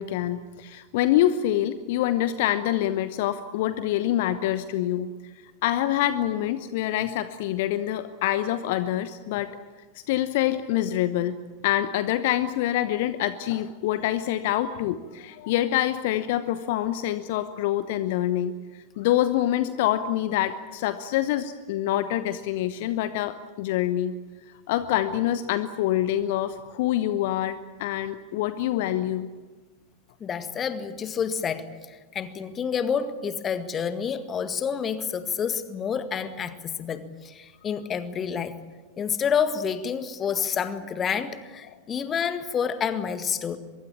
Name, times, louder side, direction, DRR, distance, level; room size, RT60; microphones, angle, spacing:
voice 1, 0.0-5.3 5.6-9.5 9.9-11.4 11.6-24.1 24.5-29.3, left 12 dB, 50° left, 12 dB, 1.0 m, -26 dB
voice 2, 30.2-38.6 39.0-43.6, left 7 dB, 25° left, 11 dB, 1.9 m, -29 dB
24.0 x 22.5 x 8.8 m, 1.3 s
figure-of-eight pair, 90°, 0 cm